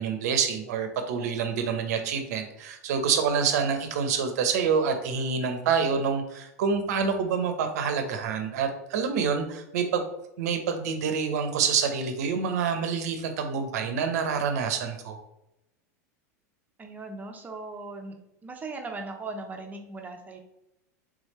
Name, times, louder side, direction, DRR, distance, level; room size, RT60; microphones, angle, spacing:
voice 1, 0.0-10.0 10.4-15.2, right 6 dB, 70° right, 6 dB, 0.7 m, -27 dB
voice 2, 16.8-18.1 18.4-20.4, right 3 dB, 20° right, 3 dB, 0.7 m, -38 dB
3.6 x 3.2 x 3.1 m, 0.86 s
hypercardioid pair, 100°, 9 cm